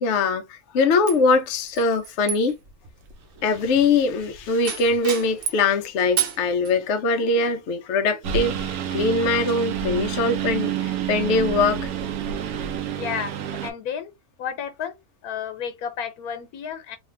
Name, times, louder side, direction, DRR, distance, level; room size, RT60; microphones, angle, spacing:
voice 1, 0.0-2.5 3.4-11.9, left 3 dB, 65° left, 0.8 m, -22 dB
sound 1, 1.1-5.7 6.2-6.7, right 9 dB, 55° right, 0.9 m, -32 dB
Engine, 8.2-13.7, right 8 dB, 80° right, 1.1 m, -28 dB
voice 2, 12.9-13.3 13.6-14.1 14.4-15.0 15.2-17.0, left 8 dB, 85° left, 1.2 m, -31 dB
3.2 x 2.3 x 3.2 m
omnidirectional pair, 1.5 m